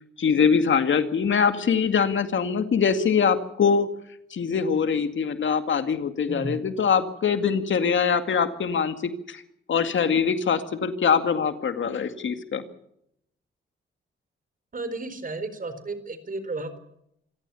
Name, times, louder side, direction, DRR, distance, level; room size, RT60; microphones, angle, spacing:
voice 1, 0.2-3.9 4.3-9.4 9.7-12.6, left 6 dB, 65° left, 9 dB, 2.2 m, -23 dB
voice 2, 14.7-16.8, right 3 dB, 40° right, 12 dB, 4.3 m, -33 dB
26.0 x 17.0 x 7.1 m, 0.75 s
cardioid pair, 75°, 21 cm